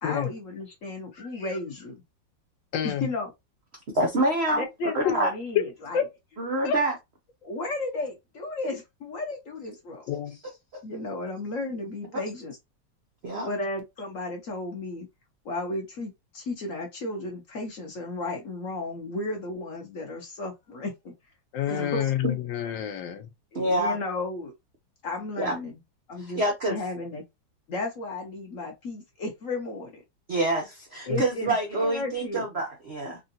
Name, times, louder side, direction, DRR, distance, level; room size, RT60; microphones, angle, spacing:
voice 1, 0.0-2.0 2.8-3.3 4.6-6.0 7.4-10.0 10.8-12.5 13.4-15.1 15.4-21.1 21.7-22.1 23.5-24.5 25.0-25.8 26.1-26.4 26.7-27.2 27.7-30.0 31.0-32.5, left 2 dB, 55° left, 0.9 m, -34 dB
voice 2, 2.7-3.1 5.0-5.1 5.5-5.6 5.9-6.0 6.6-6.8 10.1-10.4 21.5-23.3 31.1-31.2, left 9 dB, 75° left, 1.4 m, -27 dB
voice 3, 3.9-4.6 4.9-5.3 6.4-6.9 10.7-10.8 12.1-12.2 13.2-13.5 21.7-22.0 22.2-22.4 23.5-24.0 25.4-25.6 26.2-26.8 30.3-33.2, right 1 dB, 70° right, 0.6 m, -26 dB
3.7 x 2.4 x 2.6 m
omnidirectional pair, 2.1 m